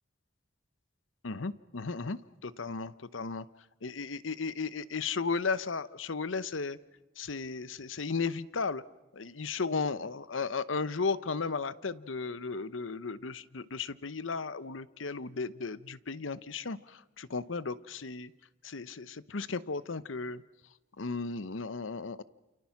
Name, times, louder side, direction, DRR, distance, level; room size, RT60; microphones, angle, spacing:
voice 1, 1.2-3.5 3.8-6.8 7.2-8.8 9.1-18.3 18.6-20.4 21.0-22.2, left 4 dB, 90° left, 16 dB, 0.9 m, -35 dB
29.0 x 29.0 x 6.0 m, 1.1 s
head